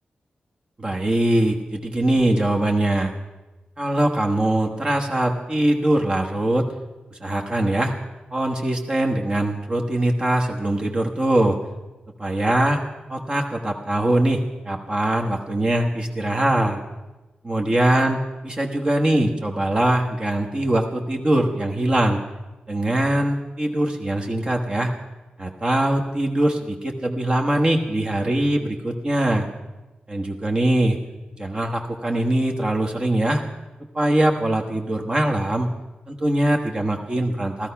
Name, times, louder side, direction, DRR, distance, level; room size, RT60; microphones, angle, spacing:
voice 1, 0.8-3.1 3.8-6.7 7.2-7.9 8.3-11.6 12.2-12.8 13.1-16.8 17.4-22.2 22.7-24.9 25.4-29.5 30.1-31.0 31.4-33.4 33.9-35.7 36.1-37.7, right 1 dB, 30° right, 1 dB, 1.2 m, -22 dB
15.0 x 13.0 x 5.7 m, 1.1 s
wide cardioid pair, 135°, 3 cm